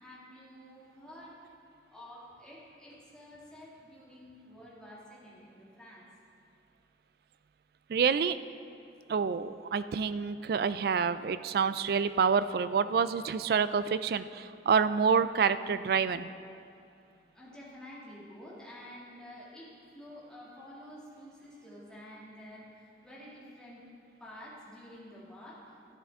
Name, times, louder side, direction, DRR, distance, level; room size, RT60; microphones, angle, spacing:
voice 1, 0.0-1.5 1.9-6.1 17.3-23.8 24.2-25.9, left 1 dB, 5° left, -7 dB, 2.2 m, -50 dB
voice 2, 7.9-8.4 9.1-16.3, right 6 dB, 60° right, 13 dB, 0.3 m, -27 dB
12.5 x 10.5 x 3.6 m, 2.5 s
head